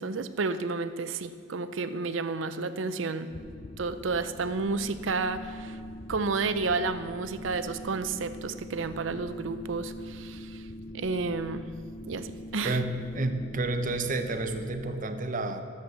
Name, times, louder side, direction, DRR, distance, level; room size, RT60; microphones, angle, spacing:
voice 1, 0.0-3.3 3.8-5.8 6.1-10.7 10.9-11.7 12.0-12.8, right 4 dB, 75° right, 11 dB, 0.6 m, -31 dB
sound 1, 3.3-14.9, left 1 dB, 35° left, 0.6 m, -43 dB
voice 2, 12.6-15.6, right 2 dB, 45° right, 8 dB, 0.8 m, -30 dB
13.0 x 7.8 x 6.6 m, 2.2 s
head